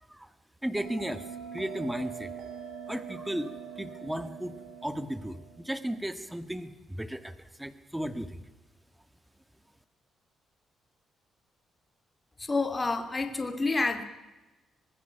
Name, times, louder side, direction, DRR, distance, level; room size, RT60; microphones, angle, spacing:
voice 1, 0.6-1.2 1.5-2.3 2.9-4.6 4.8-8.4, equal, 5° right, 10 dB, 1.8 m, -35 dB
Bell, 0.7-5.8, right 7 dB, 70° right, 5.4 m, -43 dB
voice 2, 12.4-14.0, left 3 dB, 20° left, 6 dB, 2.6 m, -28 dB
25.0 x 19.5 x 5.9 m, 1.1 s
cardioid pair, 90°, 0 cm